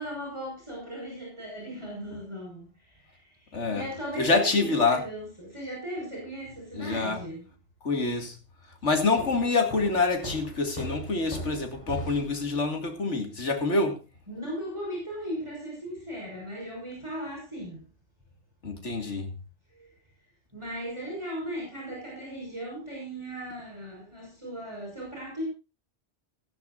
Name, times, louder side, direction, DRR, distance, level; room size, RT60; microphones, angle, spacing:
voice 1, 0.0-3.2 3.6-7.5 14.3-17.8 19.8-19.9 20.5-25.5, equal, 25° right, 5.6 m, -37 dB
voice 2, 3.5-3.9 4.2-5.0 6.7-7.2 7.8-8.4 8.8-14.0 18.6-19.3, left 3 dB, 85° left, 2.6 m, -26 dB
Walk footsteps, 9.2-12.5, right 1 dB, 30° left, 6.4 m, -39 dB
16.5 x 14.5 x 2.6 m
omnidirectional pair, 1.2 m